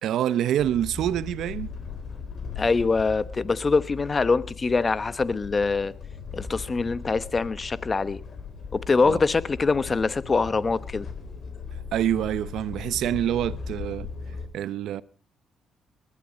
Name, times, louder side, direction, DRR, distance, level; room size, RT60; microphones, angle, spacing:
voice 1, 0.0-1.7 9.0-9.2 11.9-14.1 14.5-15.0, right 11 dB, 80° right, 0.7 m, -26 dB
sound 1, 0.6-14.5, left 5 dB, 50° left, 4.2 m, -38 dB
voice 2, 2.6-5.9 6.3-8.2 8.7-11.1, left 4 dB, 30° left, 1.0 m, -24 dB
20.0 x 12.5 x 5.2 m
cardioid pair, 90°, 0 cm